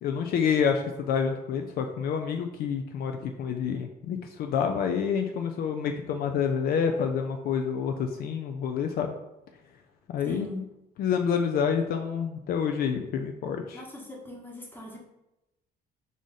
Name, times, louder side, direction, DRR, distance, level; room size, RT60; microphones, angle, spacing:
voice 1, 0.0-9.1 10.1-10.5 11.0-13.8, left 7 dB, 65° left, 5 dB, 0.4 m, -28 dB
voice 2, 10.2-10.6 13.7-15.0, left 1 dB, 10° left, -1 dB, 1.1 m, -40 dB
4.8 x 2.5 x 4.0 m, 0.92 s
cardioid pair, 110°, 17 cm